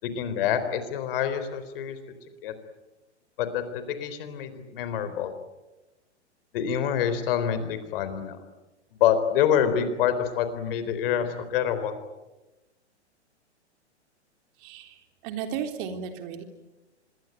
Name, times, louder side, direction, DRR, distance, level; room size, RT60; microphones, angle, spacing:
voice 1, 0.0-2.0 2.4-2.5 3.4-5.3 6.5-8.4 8.9-11.9, left 9 dB, 50° left, 10 dB, 4.2 m, -26 dB
voice 2, 14.6-16.4, right 7 dB, 45° right, 6 dB, 3.7 m, -35 dB
26.5 x 22.0 x 9.3 m, 1.1 s
hypercardioid pair, 115°, 35 cm